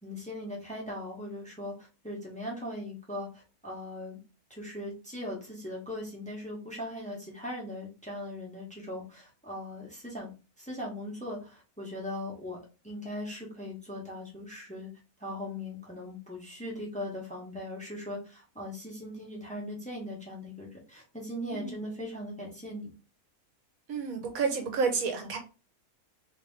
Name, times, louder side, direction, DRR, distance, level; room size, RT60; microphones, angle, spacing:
voice 1, 0.0-4.2 4.5-10.3 10.6-12.6 12.8-14.9 15.2-22.9, left 1 dB, 5° left, -3 dB, 1.1 m, -39 dB
voice 2, 23.9-25.4, right 5 dB, 65° right, 5 dB, 1.2 m, -30 dB
3.6 x 3.0 x 3.4 m, 0.32 s
omnidirectional pair, 1.6 m